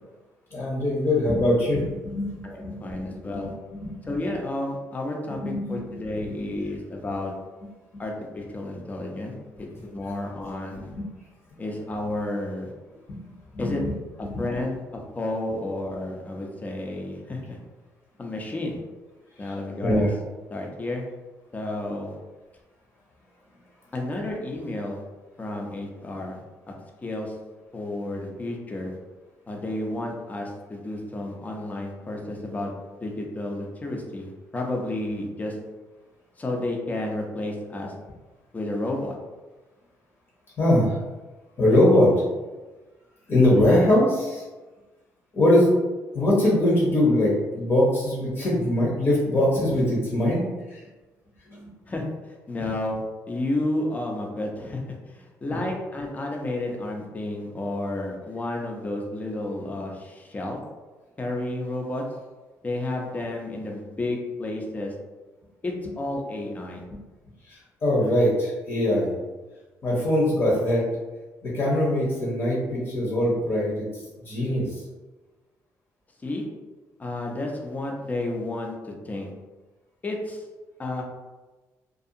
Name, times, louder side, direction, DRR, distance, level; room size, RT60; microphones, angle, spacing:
voice 1, 0.5-3.0 3.3-3.4 3.7-4.1 5.3-6.0 6.3-6.4 13.1-13.2 13.5-13.7 19.4-19.5 19.8-20.1 40.6-41.0 41.6-42.1 43.3-44.4 45.3-45.7 46.1-50.9 51.5-51.7 52.6-52.7 67.4-69.1 69.8-70.9 71.4-74.8, left 1 dB, 45° left, -5 dB, 0.9 m, -22 dB
voice 2, 2.4-3.5 4.0-7.3 8.0-10.9 11.6-12.7 13.6-13.8 14.2-17.6 18.2-18.8 19.4-20.1 20.5-21.0 21.5-22.2 23.9-25.0 25.4-26.4 27.0-27.3 27.7-28.9 29.5-32.7 33.0-35.6 36.4-37.9 38.5-39.1 51.9-52.0 52.5-53.0 53.3-54.8 55.1-60.6 61.2-62.0 62.6-64.9 65.6-66.8 76.2-76.4 77.0-78.7 79.0-79.3 80.0-80.4 80.8-81.0, left 2 dB, 25° left, 0 dB, 0.6 m, -31 dB
2.5 x 2.3 x 2.7 m, 1.2 s
cardioid pair, 90°, 6 cm